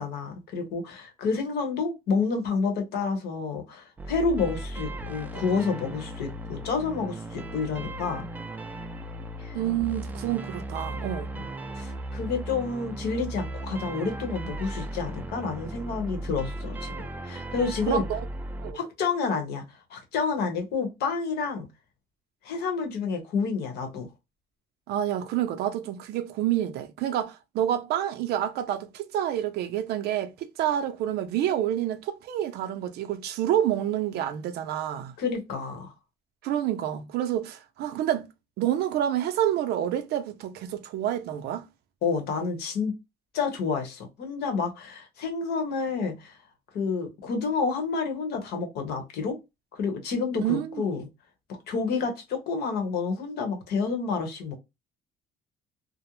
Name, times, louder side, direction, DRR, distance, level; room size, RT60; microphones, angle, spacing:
voice 1, 0.0-8.2 9.4-9.6 11.4-11.5 11.8-16.9 17.2-18.0 18.7-19.6 19.9-21.7 22.4-24.1 35.2-35.9 42.0-43.0 43.3-46.3 46.7-49.4 49.8-51.1 51.7-54.6, left 4 dB, 70° left, 0.9 m, -29 dB
sound 1, 4.0-18.7, right 1 dB, 10° right, 0.3 m, -36 dB
voice 2, 9.5-11.3 17.9-18.2 18.6-18.8 24.9-35.1 36.4-38.3 38.6-41.7 50.4-50.8, right 11 dB, 75° right, 0.5 m, -28 dB
2.5 x 2.0 x 2.9 m
cardioid pair, 110°, 17 cm